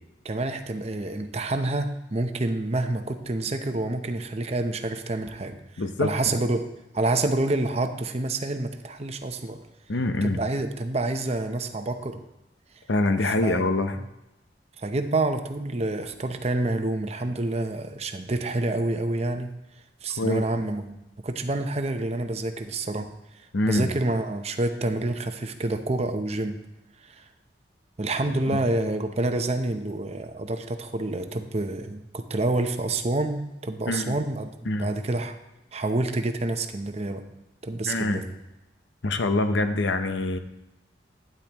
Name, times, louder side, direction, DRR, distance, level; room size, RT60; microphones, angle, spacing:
voice 1, 0.2-5.6 6.0-6.7 6.9-9.6 10.2-12.2 13.2-13.6 14.0-14.1 14.8-19.5 20.0-21.0 21.2-23.1 23.6-26.6 27.0-27.3 28.0-35.4 35.7-37.2 37.6-38.3, right 2 dB, 35° right, 7 dB, 0.7 m, -28 dB
voice 2, 5.8-6.1 9.9-10.4 12.9-14.0 20.2-20.5 23.5-23.9 28.5-28.6 33.9-34.1 34.7-34.9 37.9-38.2 39.0-40.4, left 2 dB, 80° left, 8 dB, 0.8 m, -25 dB
12.0 x 9.7 x 3.0 m, 0.94 s
head